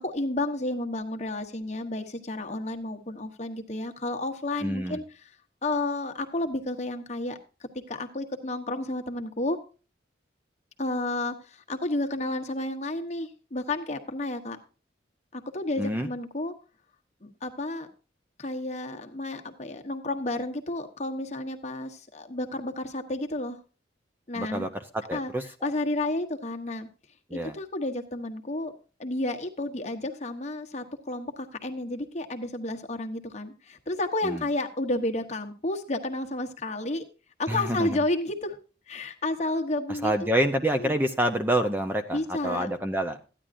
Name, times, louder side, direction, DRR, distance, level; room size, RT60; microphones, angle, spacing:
voice 1, 0.0-5.0 5.6-9.6 10.8-14.6 15.3-16.5 17.2-17.9 18.4-23.6 24.3-24.7 25.1-25.3 25.6-26.9 27.3-28.7 29.0-37.0 37.4-38.6 38.9-40.3 40.8-40.9 42.1-42.7, left 2 dB, 35° left, 5 dB, 1.1 m, -31 dB
voice 2, 4.6-5.0 15.8-16.1 24.4-24.7 24.9-25.5 27.3-27.5 34.2-34.4 37.5-37.9 39.9-43.2, right 1 dB, 10° right, 7 dB, 0.5 m, -27 dB
14.0 x 10.0 x 2.6 m, 0.34 s
head